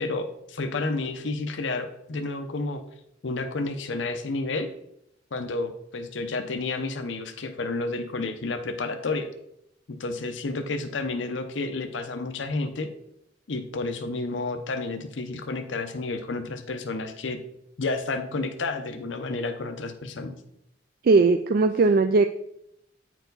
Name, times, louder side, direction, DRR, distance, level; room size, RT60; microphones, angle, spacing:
voice 1, 0.0-2.8 3.2-4.7 5.3-9.3 9.9-12.9 13.5-17.4 17.8-20.3, left 3 dB, 75° left, 7 dB, 0.7 m, -30 dB
voice 2, 21.0-22.3, right 3 dB, 50° right, 7 dB, 0.3 m, -19 dB
8.8 x 4.6 x 3.9 m, 0.76 s
head